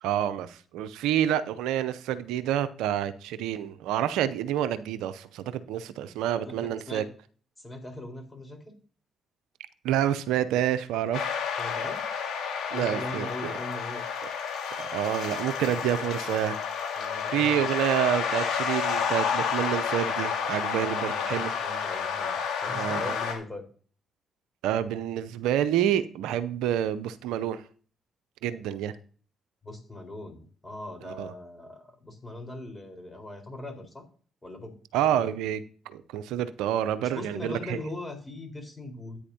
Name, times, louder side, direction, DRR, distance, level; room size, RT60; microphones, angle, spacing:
voice 1, 0.0-7.0 9.8-11.4 12.7-13.6 14.8-16.6 17.3-21.5 22.7-23.2 24.6-27.6 28.4-28.9 31.0-31.3 34.9-37.8, right 10 dB, 80° right, 0.6 m, -28 dB
voice 2, 6.4-7.1 7.6-8.7 11.6-12.1 12.7-14.1 16.9-17.7 20.8-23.6 29.6-34.0 34.4-34.7 35.2-35.3 37.0-39.2, left 2 dB, 20° left, 4.4 m, -40 dB
sound 1, 11.1-23.3, left 6 dB, 70° left, 2.7 m, -30 dB
14.0 x 9.2 x 2.8 m
hypercardioid pair, 45°, 0 cm